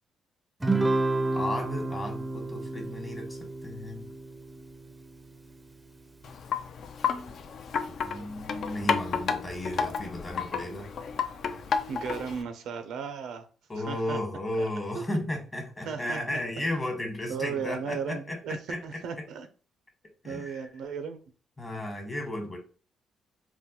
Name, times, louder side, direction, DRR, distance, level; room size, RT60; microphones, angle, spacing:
Guitar, 0.6-5.2, right 2 dB, 15° right, 0.4 m, -30 dB
voice 1, 1.3-4.1 8.0-10.9 13.7-18.8 20.2-20.7 21.6-22.6, left 1 dB, 25° left, 3 dB, 1.2 m, -34 dB
Wind chime, 6.2-12.4, left 6 dB, 60° left, 0.4 m, -32 dB
voice 2, 11.9-13.5 13.8-14.2 14.6-14.7 14.9-15.0 15.9-16.4 17.3-18.6 18.8-19.5 20.2-21.2, right 6 dB, 80° right, 9 dB, 0.4 m, -35 dB
3.8 x 2.1 x 2.9 m, 0.38 s
cardioid pair, 90°, 0 cm